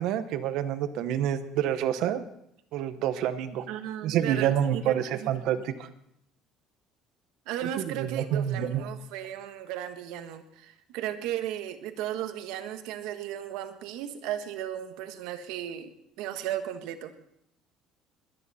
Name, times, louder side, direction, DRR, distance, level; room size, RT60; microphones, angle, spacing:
voice 1, 0.0-2.3 2.7-3.6 4.0-5.9 7.6-8.8, right 10 dB, 60° right, 11 dB, 0.9 m, -28 dB
voice 2, 3.7-4.9 5.2-5.6 7.5-15.9 16.2-17.1, right 11 dB, 80° right, 8 dB, 1.3 m, -35 dB
21.5 x 10.0 x 4.2 m, 0.77 s
cardioid pair, 175°, 0 cm